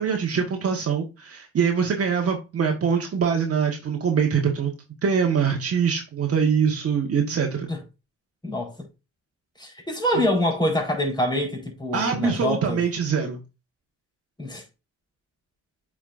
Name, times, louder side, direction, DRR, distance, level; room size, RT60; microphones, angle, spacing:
voice 1, 0.0-4.7 5.0-7.7 11.9-13.4, right 6 dB, 50° right, 1.5 m, -23 dB
voice 2, 9.6-12.8 14.4-14.6, left 1 dB, 15° left, 4.1 m, -25 dB
8.3 x 5.1 x 2.6 m
cardioid pair, 90°, 30 cm